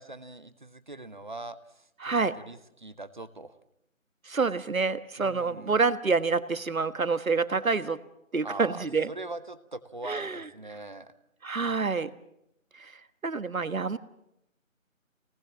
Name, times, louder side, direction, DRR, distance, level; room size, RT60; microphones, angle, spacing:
voice 1, 0.0-3.6 5.2-5.7 8.4-11.1, right 2 dB, 35° right, 13 dB, 1.1 m, -42 dB
voice 2, 2.0-2.3 4.2-8.0 8.3-9.1 10.0-10.5 11.4-12.1 12.7-14.0, right 4 dB, 80° right, 13 dB, 1.5 m, -27 dB
24.5 x 19.0 x 7.4 m, 0.80 s
figure-of-eight pair, 170°, 41 cm